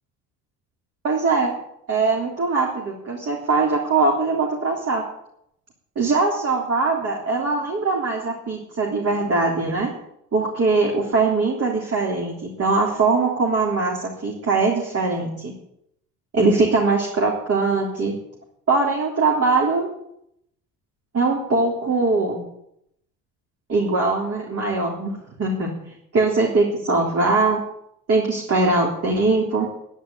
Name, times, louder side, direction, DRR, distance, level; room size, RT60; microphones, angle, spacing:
voice 1, 1.0-1.5 1.9-5.0 6.0-9.9 10.3-15.5 16.3-18.1 18.7-19.9 21.1-22.4 23.7-25.7 26.1-27.6 28.1-29.7, right 3 dB, 40° right, -1 dB, 3.6 m, -21 dB
11.0 x 10.0 x 8.5 m, 0.75 s
supercardioid pair, 85°, 36 cm